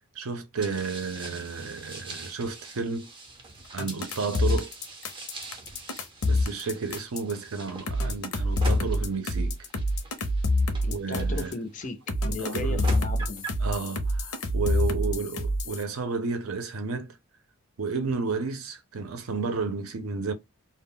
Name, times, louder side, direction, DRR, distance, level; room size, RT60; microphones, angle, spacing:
voice 1, 0.2-3.1 3.7-4.7 6.2-9.6 10.8-11.5 12.3-12.9 13.6-17.2 17.8-20.3, right 4 dB, 70° right, 0.5 m, -32 dB
sound 1, 0.6-11.9 12.5-13.7, right 2 dB, 20° right, 0.5 m, -41 dB
sound 2, 3.8-7.3 7.9-11.5 12.1-15.8, left 1 dB, 80° left, 0.6 m, -27 dB
voice 2, 10.8-13.5, left 3 dB, 35° left, 0.4 m, -36 dB
2.2 x 2.0 x 3.6 m
head